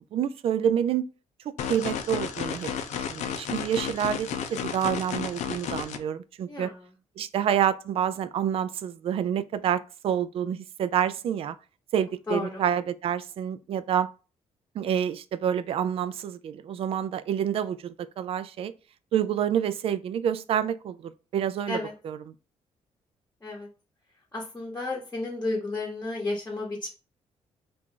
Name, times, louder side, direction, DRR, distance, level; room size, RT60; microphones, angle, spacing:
voice 1, 0.1-1.0 1.7-2.7 3.0-6.7 7.2-11.6 11.9-14.1 14.8-18.7 19.1-21.8 22.0-22.2, right 9 dB, 55° right, 0.4 m, -28 dB
sound 1, 1.6-6.0, left 8 dB, 85° left, 0.5 m, -32 dB
voice 2, 6.5-6.8 12.3-12.6 21.7-21.9 23.4-23.7 24.3-26.9, left 2 dB, 15° left, 0.9 m, -32 dB
4.3 x 2.5 x 3.7 m
cardioid pair, 145°, 12 cm